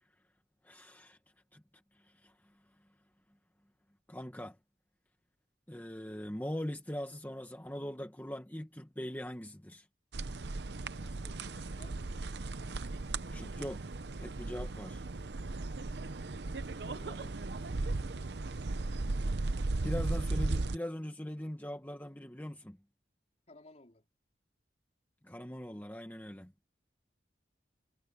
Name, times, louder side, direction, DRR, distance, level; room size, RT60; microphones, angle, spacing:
voice 1, 0.6-1.2 1.5-1.6 1.9-2.6 4.1-4.6 5.7-9.9 13.3-13.9 14.2-15.0 19.8-22.8 25.2-26.5, equal, 10° left, 1.3 m, -41 dB
sound 1, 10.1-20.8, right 2 dB, 70° right, 0.8 m, -36 dB
voice 2, 10.9-12.1 16.8-18.3 23.5-24.1, left 2 dB, 40° left, 3.9 m, -58 dB
head